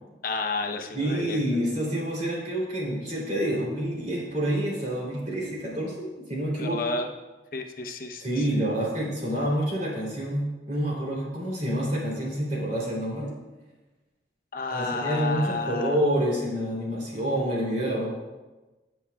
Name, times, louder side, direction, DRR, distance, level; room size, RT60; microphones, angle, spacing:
voice 1, 0.2-1.6 6.6-7.1 7.5-8.4 14.5-15.9, left 3 dB, 50° left, 3 dB, 0.8 m, -31 dB
voice 2, 0.9-6.8 8.2-13.3 14.7-18.1, equal, 40° right, -4 dB, 3.2 m, -28 dB
18.0 x 7.1 x 2.4 m, 1.2 s
head